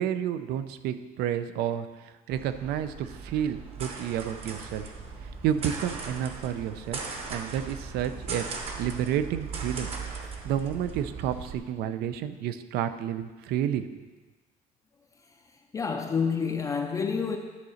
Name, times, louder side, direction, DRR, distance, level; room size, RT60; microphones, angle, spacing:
voice 1, 0.0-4.9 5.4-7.0 7.3-8.5 8.8-9.9 10.2-14.0, right 10 dB, 80° right, 11 dB, 0.5 m, -30 dB
sound 1, 2.3-11.6, right 4 dB, 35° right, 0.9 m, -38 dB
voice 2, 15.7-17.4, left 5 dB, 20° left, 3 dB, 0.4 m, -28 dB
11.0 x 4.0 x 6.4 m, 1.3 s
cardioid pair, 170°, 16 cm